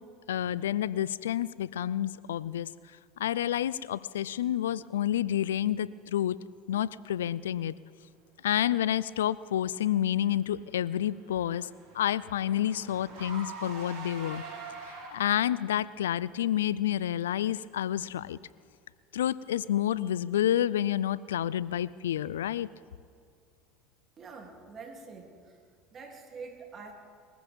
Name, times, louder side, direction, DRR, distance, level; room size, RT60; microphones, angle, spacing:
voice 1, 0.3-2.7 3.2-6.4 6.7-7.7 8.4-11.7 11.9-14.4 14.9-18.4 19.1-22.7, left 11 dB, 85° left, 20 dB, 0.4 m, -29 dB
Car / Engine, 10.5-15.5, right 4 dB, 65° right, 4.5 m, -45 dB
voice 2, 24.2-25.6 25.9-26.9, right 4 dB, 40° right, 1 dB, 2.9 m, -45 dB
21.5 x 15.0 x 3.6 m, 2.3 s
hypercardioid pair, 80°, 0 cm